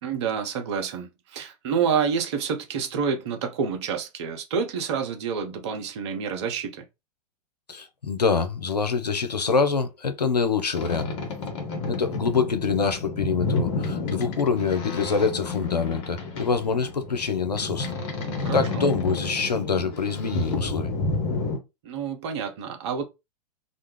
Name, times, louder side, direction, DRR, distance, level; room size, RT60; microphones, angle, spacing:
voice 1, 0.0-6.8 18.2-18.9 21.8-23.0, right 6 dB, 45° right, 0.7 m, -28 dB
voice 2, 7.7-11.1 11.9-17.9 18.5-20.9, left 5 dB, 85° left, 0.5 m, -25 dB
Boat Water vehicle, 10.7-21.6, left 3 dB, 45° left, 0.8 m, -30 dB
2.3 x 2.0 x 3.2 m
figure-of-eight pair, 100°, 20 cm